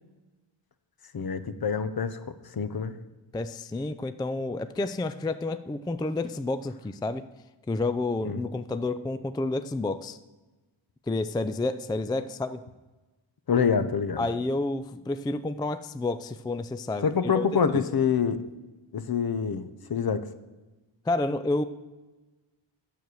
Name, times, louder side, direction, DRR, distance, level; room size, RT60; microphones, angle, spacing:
voice 1, 1.1-2.2 2.5-3.0 8.2-8.4 13.5-14.3 17.0-18.5 18.9-20.3, left 6 dB, 50° left, 12 dB, 0.8 m, -26 dB
voice 2, 3.3-7.2 7.7-10.2 11.1-12.6 14.2-17.1 17.3-17.4 17.7-17.8 21.1-21.6, left 2 dB, 10° left, 12 dB, 0.3 m, -30 dB
9.2 x 6.9 x 6.3 m, 1.2 s
wide cardioid pair, 70°, 48 cm